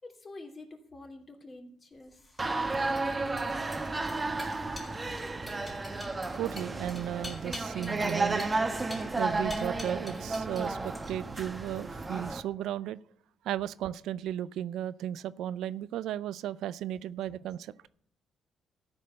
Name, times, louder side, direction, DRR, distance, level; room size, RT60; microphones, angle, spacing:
voice 1, 0.0-2.2, left 2 dB, 35° left, 2 dB, 2.8 m, -47 dB
sound 1, 2.1-10.7 10.9-11.4, left 2 dB, 15° left, 3.8 m, -46 dB
sound 2, 2.4-12.4, right 3 dB, 25° right, 1.1 m, -33 dB
voice 2, 6.4-8.5 9.2-13.0 13.4-17.7, right 11 dB, 85° right, 17 dB, 0.4 m, -35 dB
13.5 x 5.4 x 7.9 m, 0.62 s
cardioid pair, 90°, 0 cm